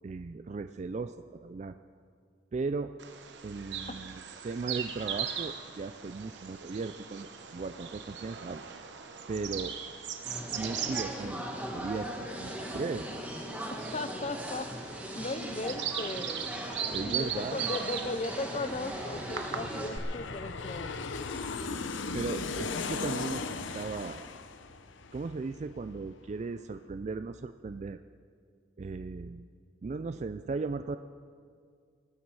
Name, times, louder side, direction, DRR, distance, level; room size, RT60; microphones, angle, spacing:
voice 1, 0.0-1.8 2.5-2.9 3.4-8.6 9.3-9.8 10.5-11.5 11.7-12.1 12.4-13.1 16.9-17.7 22.1-24.2 25.1-28.0 28.8-29.5 29.8-31.0, right 4 dB, 35° right, 10 dB, 0.3 m, -37 dB
Bird vocalization bird call bird song, 3.0-20.0, right 8 dB, 65° right, 1.0 m, -40 dB
sound 1, 10.2-19.9, equal, 10° right, 1.4 m, -39 dB
voice 2, 13.9-16.4 17.1-21.3, left 2 dB, 35° left, 12 dB, 0.6 m, -37 dB
Aircraft, 14.4-14.5 14.7-26.0 26.3-26.4, left 4 dB, 85° left, 0.7 m, -39 dB
19.0 x 12.5 x 4.8 m, 2.1 s
head